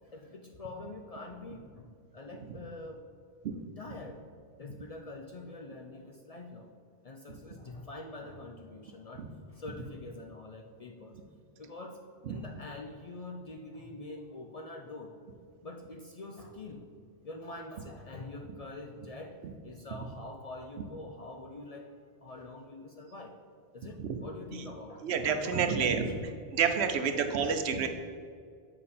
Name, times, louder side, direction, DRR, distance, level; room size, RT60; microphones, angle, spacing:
voice 1, 0.1-3.0 3.8-4.2 4.6-6.7 7.0-11.2 11.6-15.1 15.6-16.9 17.2-19.4 19.6-23.3 23.7-26.3, left 2 dB, 50° left, 2 dB, 0.5 m, -45 dB
voice 2, 25.0-26.1 26.5-27.9, right 6 dB, 85° right, 7 dB, 0.9 m, -29 dB
7.4 x 4.9 x 4.2 m, 2.1 s
omnidirectional pair, 1.1 m